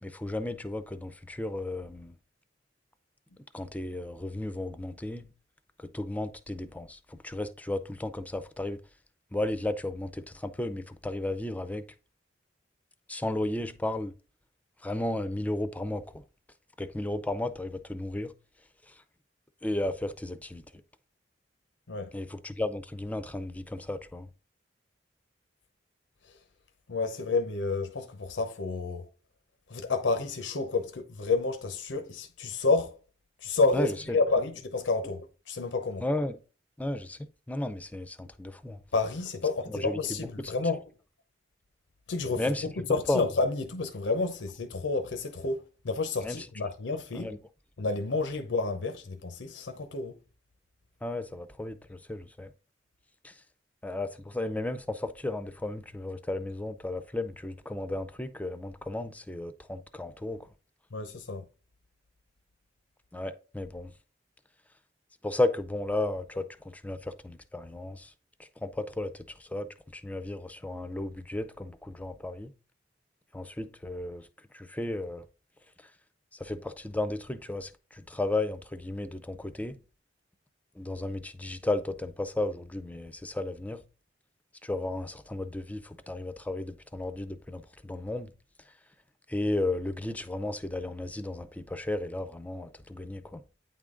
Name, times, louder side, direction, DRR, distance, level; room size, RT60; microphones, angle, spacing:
voice 1, 0.0-2.2 3.5-5.3 5.8-8.8 9.3-11.9 13.1-14.1 14.8-16.0 16.8-18.3 18.9-19.0 19.6-20.6 22.1-24.3 33.7-34.2 36.0-36.4 36.8-38.8 39.7-40.0 40.4-40.5 42.4-43.2 46.2-46.4 47.1-47.4 51.0-52.5 53.2-53.3 53.8-60.5 63.1-63.9 65.2-68.1 68.4-69.7 69.9-72.5 73.3-74.3 74.5-75.2 76.3-79.8 80.8-83.8 84.6-88.3 89.3-93.4, left 2 dB, 10° left, 0.5 m, -34 dB
voice 2, 26.9-29.1 29.7-33.0 33.4-36.0 38.9-40.8 42.1-42.5 42.9-47.3 47.8-50.2 60.9-61.4, left 3 dB, 90° left, 0.7 m, -30 dB
9.0 x 3.7 x 3.7 m
head